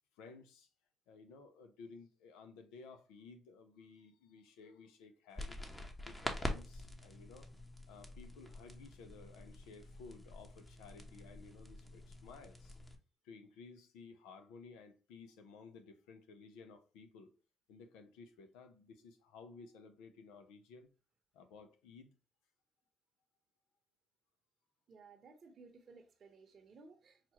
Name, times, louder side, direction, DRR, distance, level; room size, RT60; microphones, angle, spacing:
voice 1, 0.2-0.7 1.1-5.6 6.0-7.6 7.9-12.8 13.2-17.3 17.7-20.9 21.3-22.1, left 4 dB, 90° left, 0.6 m, -56 dB
sound 1, 5.4-13.0, left 1 dB, 20° left, 0.9 m, -46 dB
voice 2, 24.9-27.3, right 4 dB, 50° right, 0.8 m, -59 dB
5.7 x 2.4 x 2.9 m
supercardioid pair, 70°, 0 cm